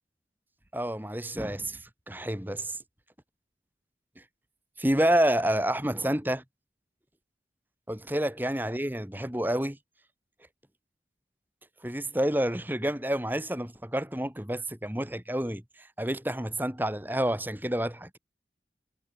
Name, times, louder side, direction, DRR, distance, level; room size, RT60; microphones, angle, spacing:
voice 1, 0.7-2.8 4.8-6.4 7.9-9.8 11.8-15.6 16.0-18.2, right 1 dB, 10° right, 1.8 m, -29 dB
head